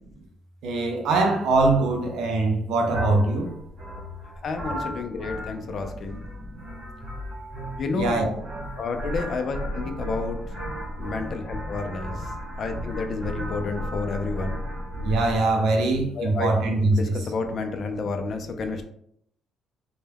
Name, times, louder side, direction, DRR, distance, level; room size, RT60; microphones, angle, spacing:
voice 1, 0.6-3.5 7.9-8.3 15.0-17.1, right 2 dB, 80° right, 0.6 m, -22 dB
sound 1, 2.9-15.5, equal, 60° right, 1.0 m, -34 dB
voice 2, 4.4-6.2 7.8-8.2 8.8-10.5 11.0-12.3 12.6-14.7 16.1-16.5 16.9-18.8, left 4 dB, 50° left, 0.4 m, -30 dB
2.2 x 2.1 x 3.3 m
cardioid pair, 110°, 0 cm